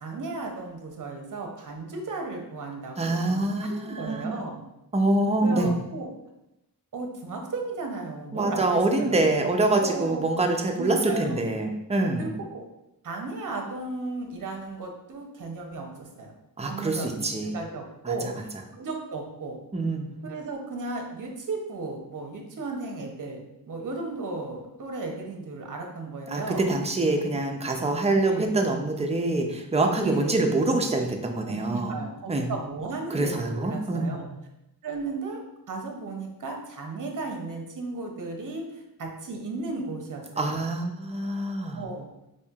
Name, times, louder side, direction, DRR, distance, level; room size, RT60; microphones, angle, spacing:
voice 1, 0.0-4.6 5.4-6.1 6.9-9.4 9.8-10.2 10.8-11.4 12.2-12.6 13.0-16.3 16.6-19.6 20.2-23.4 23.7-26.7 28.2-28.6 30.0-30.3 31.4-34.3 34.8-35.4 35.7-38.7 39.0-40.6 41.7-42.1, right 3 dB, 55° right, 2 dB, 0.7 m, -35 dB
voice 2, 3.0-4.3 4.9-5.7 8.3-12.3 16.6-17.5 18.0-18.3 19.7-20.2 26.3-32.0 32.3-32.5 33.1-34.3 40.4-41.9, right 2 dB, 20° right, 3 dB, 0.4 m, -25 dB
4.3 x 2.7 x 2.3 m, 0.91 s
wide cardioid pair, 90°, 39 cm